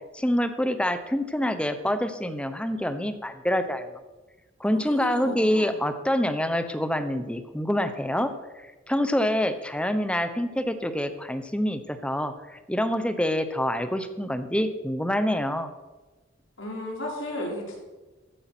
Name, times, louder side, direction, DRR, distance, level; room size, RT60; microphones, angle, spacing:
voice 1, 0.1-3.9 4.6-15.7, equal, 5° left, 10 dB, 0.8 m, -26 dB
voice 2, 4.7-5.8 16.6-17.8, left 1 dB, 75° left, -1 dB, 4.0 m, -34 dB
14.5 x 8.7 x 6.0 m, 1.2 s
head